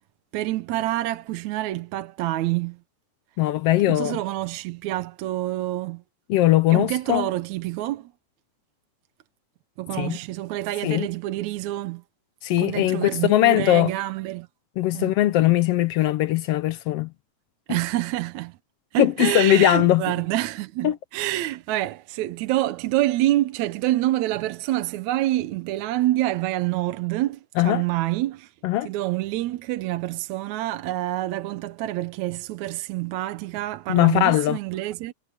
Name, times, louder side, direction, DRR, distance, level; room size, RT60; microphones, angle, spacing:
voice 1, 0.3-2.8 3.8-6.0 6.7-8.1 9.8-12.0 12.5-14.5 14.9-15.1 17.7-18.6 18.9-28.5 28.8-35.1, right 15 dB, 75° right, 2.0 m, -27 dB
voice 2, 3.4-4.2 6.3-7.3 10.0-10.2 10.8-11.1 12.4-13.9 14.8-17.1 17.7-17.8 19.0-20.0 20.8-21.0 27.6-27.8 28.6-28.9 33.9-34.6, left 14 dB, 80° left, 1.4 m, -20 dB
omnidirectional pair, 3.5 m